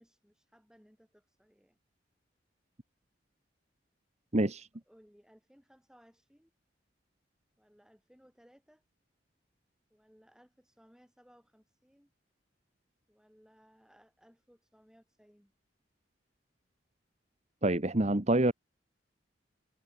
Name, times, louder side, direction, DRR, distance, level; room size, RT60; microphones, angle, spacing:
voice 1, 0.0-1.8 4.9-6.5 7.6-8.8 9.9-12.1 13.1-15.5, equal, 5° right, 7.8 m, -63 dB
voice 2, 4.3-4.7 17.6-18.5, right 1 dB, 35° right, 1.5 m, -26 dB
head